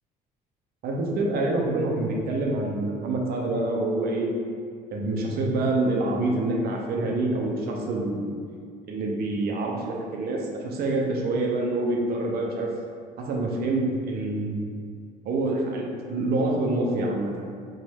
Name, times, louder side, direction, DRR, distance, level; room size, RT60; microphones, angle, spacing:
voice 1, 0.8-4.3 4.9-8.4 8.9-12.7 13.2-14.6 15.2-17.5, right 2 dB, 65° right, -1 dB, 0.9 m, -26 dB
5.4 x 2.6 x 3.6 m, 2.2 s
cardioid pair, 110°, 17 cm